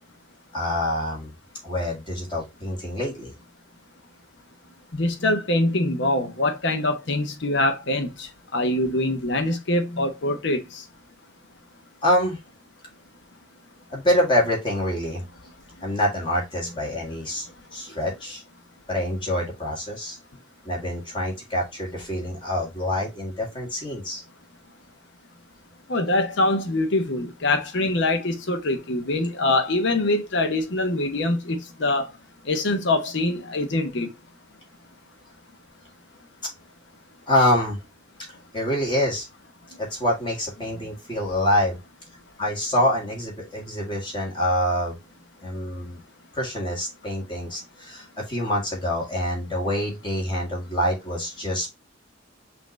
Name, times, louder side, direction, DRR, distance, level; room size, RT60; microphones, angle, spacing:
voice 1, 0.5-1.3 1.6-3.3 12.0-12.4 13.9-15.2 15.8-17.4 17.7-18.4 18.9-20.2 20.6-24.2 36.4-36.5 37.3-37.8 38.5-39.3 39.8-41.8 42.4-45.0 45.4-46.0 46.3-51.7, left 1 dB, 25° left, 1.7 m, -26 dB
voice 2, 4.9-10.8 25.9-32.1 32.5-34.1, left 2 dB, 60° left, 0.9 m, -24 dB
5.7 x 2.7 x 3.1 m
head